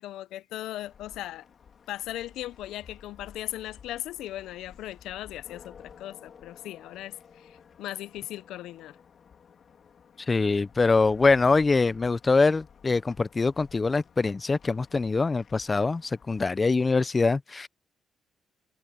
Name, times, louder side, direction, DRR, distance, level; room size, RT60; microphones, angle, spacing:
voice 1, 0.0-1.5 1.9-9.0, left 14 dB, 85° left, 0.5 m, -38 dB
sound 1, 0.8-16.4, left 7 dB, 55° left, 2.8 m, -53 dB
voice 2, 10.3-17.7, left 3 dB, 25° left, 0.5 m, -24 dB
cardioid pair, 90°, 0 cm